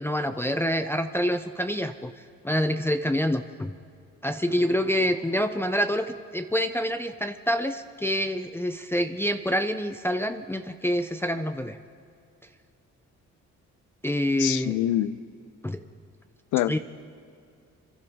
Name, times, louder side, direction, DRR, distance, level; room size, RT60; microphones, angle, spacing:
voice 1, 0.0-2.1 2.4-3.7 4.2-11.8 14.0-14.8 15.6-15.8 16.7-16.8, equal, 10° left, 7 dB, 0.6 m, -27 dB
voice 2, 14.4-15.2 16.5-16.8, left 13 dB, 90° left, 17 dB, 0.6 m, -25 dB
28.0 x 12.0 x 3.6 m, 2.4 s
cardioid pair, 90°, 30 cm